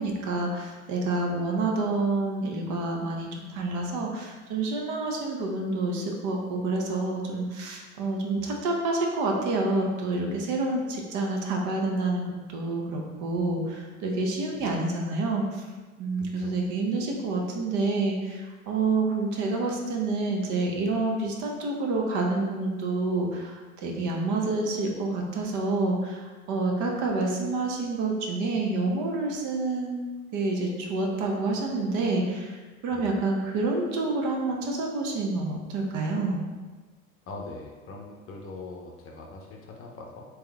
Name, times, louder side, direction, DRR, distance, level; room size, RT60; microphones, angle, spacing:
voice 1, 0.0-15.6 16.0-36.5, right 2 dB, 45° right, 1 dB, 0.8 m, -28 dB
voice 2, 16.2-16.5 32.9-33.1 37.3-40.3, left 3 dB, 30° left, 0 dB, 0.7 m, -42 dB
3.5 x 3.0 x 3.4 m, 1.3 s
hypercardioid pair, 80°, 42 cm